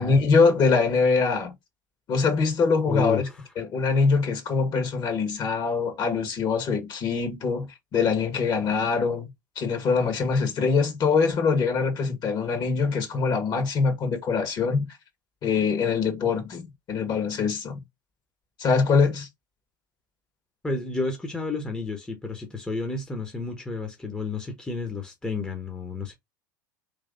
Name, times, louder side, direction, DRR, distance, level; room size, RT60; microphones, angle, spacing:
voice 1, 0.0-1.5 2.1-3.3 3.6-9.3 9.5-14.9 15.4-17.8 18.6-19.3, left 5 dB, 40° left, 1.7 m, -23 dB
voice 2, 2.9-3.4 20.6-26.2, left 3 dB, 10° left, 1.1 m, -31 dB
3.4 x 3.1 x 3.9 m
hypercardioid pair, 85°, 11 cm